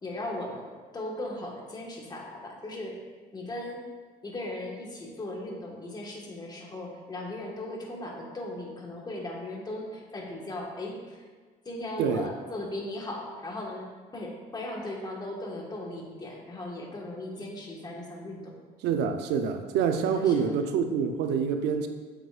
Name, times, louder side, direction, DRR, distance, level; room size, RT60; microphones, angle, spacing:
voice 1, 0.0-3.0 3.3-3.8 4.2-11.2 11.6-18.5 20.1-20.3, left 1 dB, 25° left, -1 dB, 1.6 m, -37 dB
voice 2, 18.8-21.9, right 6 dB, 85° right, 7 dB, 0.7 m, -26 dB
8.8 x 6.8 x 2.5 m, 1.4 s
cardioid pair, 110°, 17 cm